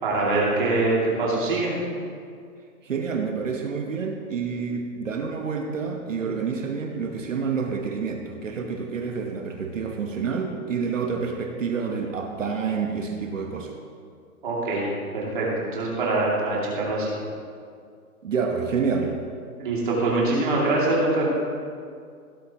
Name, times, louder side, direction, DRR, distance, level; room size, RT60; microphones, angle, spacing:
voice 1, 0.0-1.8 14.4-14.9 15.1-17.1 19.6-21.3, right 2 dB, 35° right, -5 dB, 2.5 m, -24 dB
voice 2, 2.8-13.8 18.2-19.2, right 5 dB, 55° right, 3 dB, 1.2 m, -28 dB
16.5 x 8.2 x 2.9 m, 2.2 s
hypercardioid pair, 180°, 46 cm